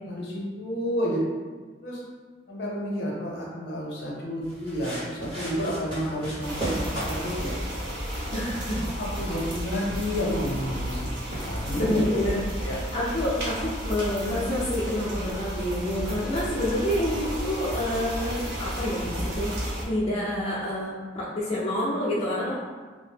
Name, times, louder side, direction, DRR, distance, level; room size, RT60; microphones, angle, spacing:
voice 1, 0.1-1.2 1.8-2.0 2.5-7.5 8.3-8.4 9.0-11.1 11.4-12.0 12.5-12.8, equal, 70° left, -4 dB, 0.7 m, -30 dB
sound 1, 4.4-11.9, right 1 dB, 25° right, 1.2 m, -37 dB
sound 2, 6.4-19.9, equal, 80° right, 0.6 m, -33 dB
voice 2, 8.3-8.9 11.7-22.5, left 1 dB, 35° left, -8 dB, 0.5 m, -28 dB
2.7 x 2.0 x 3.4 m, 1.4 s
head